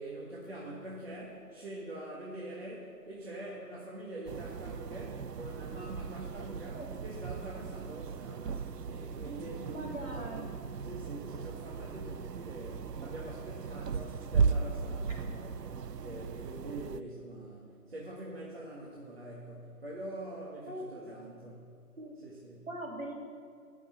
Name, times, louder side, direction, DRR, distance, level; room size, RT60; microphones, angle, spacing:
voice 1, 0.0-9.9 10.2-10.5 10.8-21.7 22.2-22.7, right 1 dB, 40° right, -4 dB, 1.7 m, -45 dB
sound 1, 4.3-17.0, right 5 dB, 85° right, 0.7 m, -36 dB
voice 2, 9.7-10.6 20.7-21.0 22.0-22.1 22.7-23.1, right 1 dB, 55° right, -2 dB, 3.2 m, -41 dB
12.0 x 6.5 x 8.2 m, 2.3 s
figure-of-eight pair, 170°, 47 cm